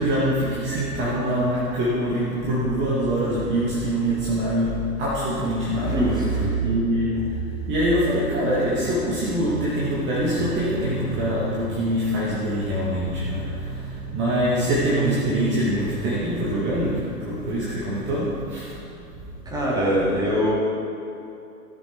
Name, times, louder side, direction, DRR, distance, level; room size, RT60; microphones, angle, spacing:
voice 1, 0.0-6.3 6.6-18.7, right 1 dB, 25° right, -8 dB, 2.1 m, -24 dB
voice 2, 5.8-6.6 19.4-20.5, equal, 10° right, -7 dB, 3.0 m, -23 dB
16.0 x 7.0 x 4.6 m, 2.7 s
figure-of-eight pair, 105°, 46 cm